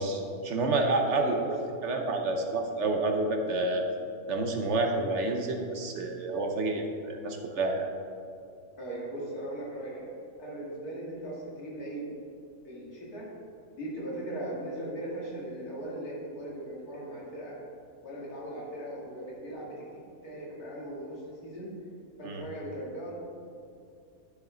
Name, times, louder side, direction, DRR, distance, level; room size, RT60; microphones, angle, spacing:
voice 1, 0.0-1.3 1.8-3.8 4.3-7.9 22.2-22.5, right 2 dB, 55° right, 3 dB, 1.0 m, -29 dB
voice 2, 1.1-1.5 8.8-12.0 12.6-13.3 13.8-17.5 18.0-19.8 20.2-21.7 22.2-23.1, right 1 dB, 90° left, -5 dB, 2.8 m, -38 dB
11.5 x 6.8 x 3.9 m, 2.5 s
omnidirectional pair, 1.6 m